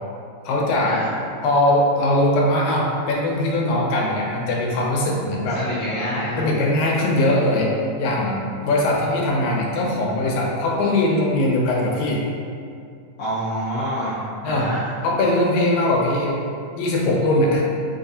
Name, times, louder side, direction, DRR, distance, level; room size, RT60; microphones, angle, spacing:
voice 1, 0.5-1.0 1.4-5.6 6.4-8.4 8.6-12.3 14.4-14.7 15.0-16.4 16.8-17.6, left 1 dB, 85° left, -2 dB, 2.0 m, -20 dB
voice 2, 5.5-6.5 13.2-15.0, equal, 70° left, -11 dB, 1.5 m, -27 dB
6.3 x 2.3 x 2.6 m, 2.4 s
omnidirectional pair, 3.4 m